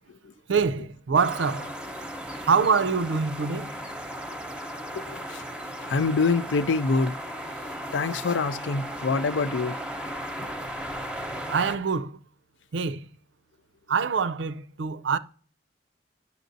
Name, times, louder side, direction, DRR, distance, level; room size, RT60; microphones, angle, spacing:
voice 1, 0.5-1.8 2.4-3.7 11.5-12.2 12.7-13.1 13.9-15.2, right 5 dB, 70° right, 0.5 m, -25 dB
sound 1, 1.1-11.8, equal, 5° right, 0.8 m, -36 dB
voice 2, 4.9-5.4 5.8-7.2 7.9-9.8, left 4 dB, 75° left, 0.5 m, -25 dB
10.0 x 7.0 x 2.6 m
head